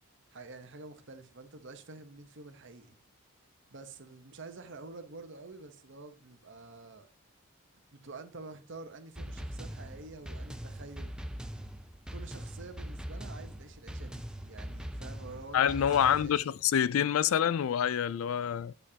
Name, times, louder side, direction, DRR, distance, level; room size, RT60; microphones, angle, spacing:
voice 1, 0.3-3.0 3.7-7.1 7.9-11.1 12.1-16.4, right 3 dB, 55° right, 1.0 m, -48 dB
sound 1, 9.2-16.4, equal, 5° right, 0.4 m, -42 dB
voice 2, 15.5-18.7, left 9 dB, 70° left, 0.3 m, -27 dB
8.9 x 6.7 x 2.8 m
head